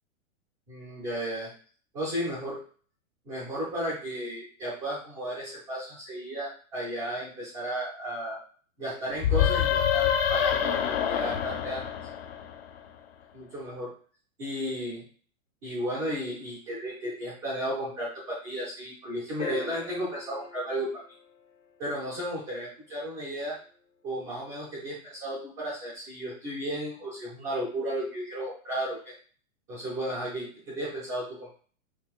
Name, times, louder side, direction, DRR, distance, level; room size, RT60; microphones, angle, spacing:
voice 1, 0.7-1.5 1.9-2.6 3.3-8.4 8.8-11.9 13.3-13.9 14.4-15.0 15.6-20.9 21.8-23.6 24.0-29.1 29.7-31.5, equal, 10° right, -7 dB, 0.4 m, -34 dB
sound 1, 9.2-12.8, left 9 dB, 50° left, 0.5 m, -26 dB
sound 2, 19.4-21.9 24.1-24.2, left 6 dB, 75° left, 1.1 m, -41 dB
6.0 x 2.2 x 2.4 m, 0.43 s
hypercardioid pair, 160°, 41 cm